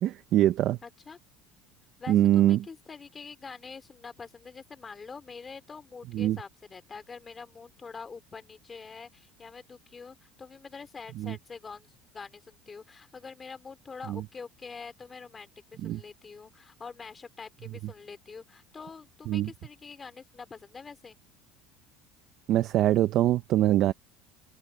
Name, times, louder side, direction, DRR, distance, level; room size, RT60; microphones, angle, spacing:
voice 1, 0.0-0.8 2.1-2.6 6.1-6.4 11.2-11.3 14.1-14.2 15.8-16.0 19.3-19.5 22.5-23.9, right 13 dB, 45° right, 0.6 m, -23 dB
voice 2, 0.8-1.2 2.0-21.2, left 5 dB, 15° left, 3.0 m, -45 dB
cardioid pair, 165°, 0 cm